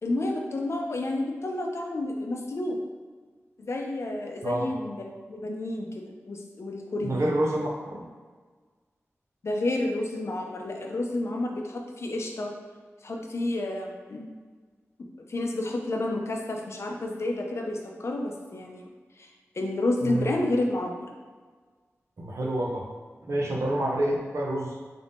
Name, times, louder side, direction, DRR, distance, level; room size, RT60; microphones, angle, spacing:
voice 1, 0.0-2.8 3.6-5.9 6.3-7.3 9.4-12.5 13.0-14.3 15.3-18.9 19.2-21.1, left 2 dB, 60° left, 2 dB, 0.5 m, -30 dB
voice 2, 7.0-7.7 20.0-20.3 22.2-22.8 23.3-24.8, right 1 dB, 65° right, -1 dB, 0.6 m, -27 dB
3.7 x 2.6 x 3.5 m, 1.5 s
wide cardioid pair, 100°, 5 cm